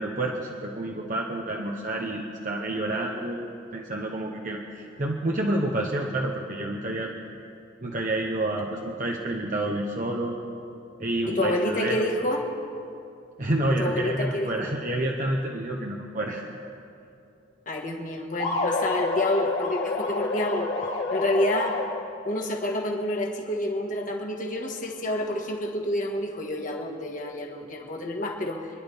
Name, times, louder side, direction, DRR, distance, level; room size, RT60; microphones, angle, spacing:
voice 1, 0.0-7.1 7.8-10.4 11.0-12.1 13.4-16.4, right 1 dB, 40° right, 0 dB, 1.0 m, -29 dB
voice 2, 11.3-12.4 13.8-14.5 17.7-20.7 21.1-21.8 22.2-28.7, left 1 dB, 40° left, 0 dB, 1.7 m, -28 dB
sound 1, 18.4-22.3, left 3 dB, 70° left, 2.5 m, -29 dB
27.5 x 11.0 x 3.6 m, 2.6 s
head